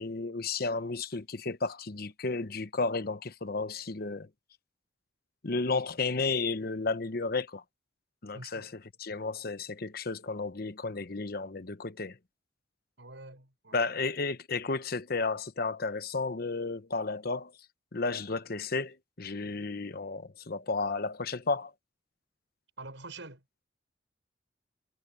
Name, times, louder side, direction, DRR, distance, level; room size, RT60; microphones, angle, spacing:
voice 1, 0.0-4.3 5.4-7.6 8.2-8.7 9.0-12.2 13.7-17.5 17.9-21.7, left 3 dB, 55° left, 1.0 m, -33 dB
voice 2, 8.3-8.7 13.0-13.9 22.8-23.4, right 2 dB, 90° right, 6.1 m, -46 dB
head